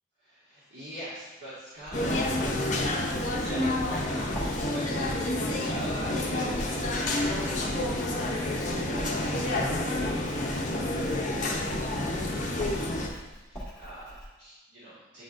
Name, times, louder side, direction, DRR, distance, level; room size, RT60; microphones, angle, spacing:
voice 1, 0.2-11.1 11.5-15.2, right 1 dB, 65° right, -12 dB, 1.9 m, -45 dB
Writing, 1.8-14.2, equal, 10° left, 1.6 m, -43 dB
sound 1, 1.9-13.1, left 1 dB, 40° left, 0.6 m, -29 dB
9.4 x 4.0 x 2.5 m, 1.1 s
head